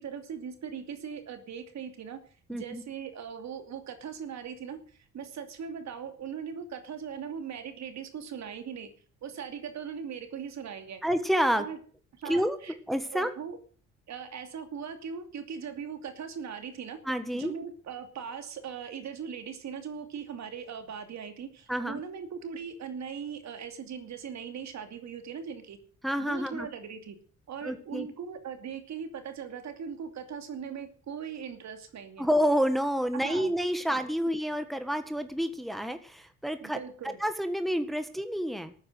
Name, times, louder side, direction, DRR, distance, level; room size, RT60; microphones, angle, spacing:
voice 1, 0.0-2.2 2.5-8.9 9.2-11.0 11.6-11.8 12.2-12.7 13.1-13.6 14.1-17.0 17.3-25.8 26.2-27.2 27.5-32.3 33.2-33.5 33.9-34.0 36.6-37.2, right 7 dB, 65° right, 7 dB, 2.7 m, -39 dB
voice 2, 2.5-2.8 11.0-11.6 12.2-12.6 12.9-13.3 17.0-17.5 21.7-22.0 26.0-26.7 27.6-28.1 32.2-38.7, equal, ahead, 9 dB, 1.5 m, -29 dB
13.5 x 9.5 x 7.9 m, 0.43 s
cardioid pair, 90°, 30 cm